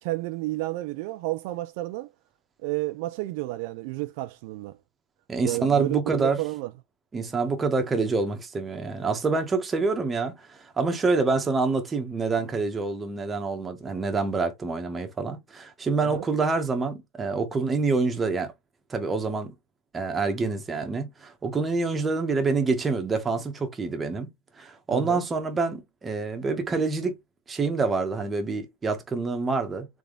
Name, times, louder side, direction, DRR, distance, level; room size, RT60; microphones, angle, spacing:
voice 1, 0.0-2.1 2.6-4.8 5.4-6.7 16.0-16.2 24.9-25.2, right 19 dB, 65° right, 0.4 m, -31 dB
voice 2, 5.3-6.4 7.1-18.5 18.9-19.5 19.9-24.3 24.6-27.2 27.5-29.9, right 4 dB, 15° right, 1.0 m, -26 dB
3.6 x 3.5 x 3.7 m
supercardioid pair, 145°, 0 cm